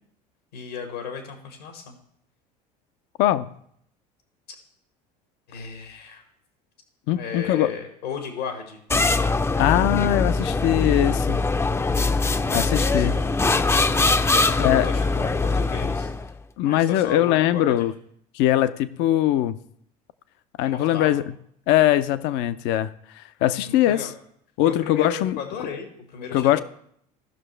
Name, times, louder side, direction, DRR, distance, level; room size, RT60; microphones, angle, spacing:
voice 1, 0.5-2.0 5.5-6.2 7.1-8.8 12.3-13.3 14.3-16.1 16.6-17.9 20.6-21.2 23.6-24.1 24.6-26.6, left 6 dB, 85° left, 3 dB, 1.9 m, -35 dB
voice 2, 3.2-3.5 7.1-7.7 9.6-11.4 12.5-13.1 14.6-14.9 16.6-17.9 18.3-19.6 20.6-21.3 21.7-24.1 24.6-25.4 26.3-26.6, left 13 dB, 60° left, 14 dB, 0.6 m, -21 dB
sound 1, 8.9-16.3, left 3 dB, 10° left, 0.5 m, -22 dB
17.0 x 6.0 x 3.3 m, 0.68 s
hypercardioid pair, 80°, 21 cm